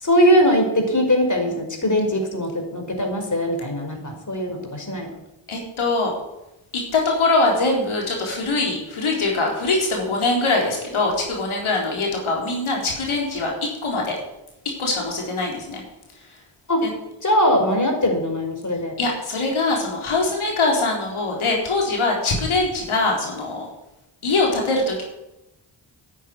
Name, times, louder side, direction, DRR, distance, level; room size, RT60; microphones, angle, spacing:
voice 1, 0.0-5.1 16.7-16.8 17.2-18.9, equal, 35° left, 3 dB, 5.1 m, -21 dB
voice 2, 5.5-6.1 6.9-14.1 14.8-15.8 16.8-16.9 19.0-23.7 24.2-25.0, left 3 dB, 75° left, -1 dB, 4.1 m, -22 dB
10.5 x 9.4 x 9.7 m, 0.91 s
supercardioid pair, 45°, 49 cm